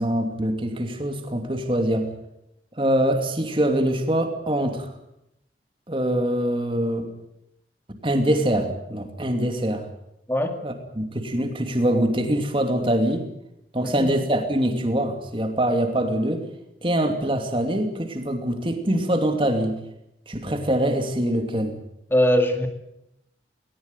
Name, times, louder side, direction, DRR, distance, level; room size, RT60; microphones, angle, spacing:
voice 1, 0.0-2.1 2.8-4.9 5.9-7.1 7.9-9.9 10.6-13.3 13.7-16.4 16.8-19.8 20.3-21.7, right 1 dB, 30° right, 6 dB, 2.7 m, -24 dB
voice 2, 13.8-14.1 22.1-22.7, equal, 15° left, 6 dB, 2.2 m, -21 dB
19.0 x 19.0 x 9.1 m, 0.82 s
head